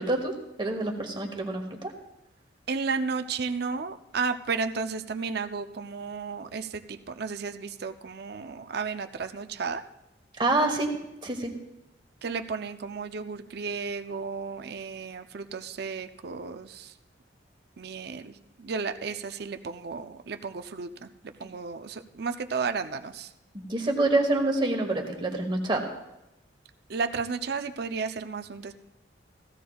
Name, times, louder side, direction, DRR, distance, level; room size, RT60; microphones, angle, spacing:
voice 1, 0.0-1.9 10.4-10.9 11.2-11.5 23.5-25.9, right 2 dB, 25° right, 2 dB, 1.2 m, -27 dB
voice 2, 2.7-9.8 12.2-16.9 17.8-23.3 26.9-28.7, right 5 dB, 55° right, 7 dB, 0.5 m, -33 dB
16.5 x 15.0 x 2.3 m, 0.90 s
head